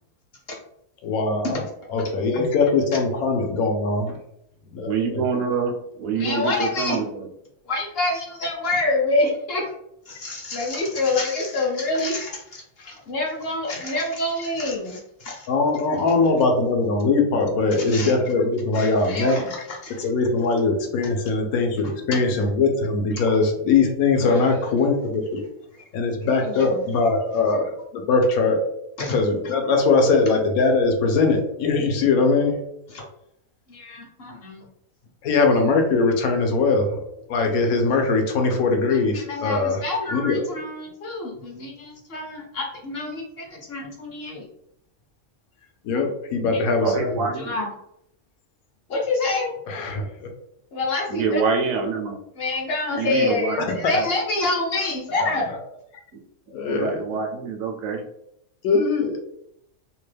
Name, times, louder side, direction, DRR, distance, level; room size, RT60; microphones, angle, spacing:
voice 1, 1.0-1.5 1.9-4.1 4.7-5.2 15.5-19.4 20.0-25.4 25.9-28.6 29.1-32.6 35.2-37.0 37.3-39.8 40.1-40.4 45.8-47.3 49.7-50.3 56.5-57.0 58.6-59.1, left 3 dB, 85° left, 3 dB, 1.1 m, -21 dB
voice 2, 4.9-7.3 46.8-47.6 51.1-52.2 53.0-53.7 54.0-54.1 56.7-58.0, right 5 dB, 75° right, 3 dB, 0.9 m, -26 dB
voice 3, 6.1-7.0 7.6-9.7 10.1-15.5 17.7-18.1 18.7-20.1 22.1-22.2 24.2-24.5 25.7-25.8 26.3-26.9 29.0-29.2 32.9-33.0 33.7-34.7 38.9-44.5 46.5-46.8 47.3-47.7 48.9-49.5 50.7-51.4 52.4-55.5, left 2 dB, 55° left, -1 dB, 0.7 m, -27 dB
2.9 x 2.2 x 3.2 m, 0.78 s
omnidirectional pair, 1.5 m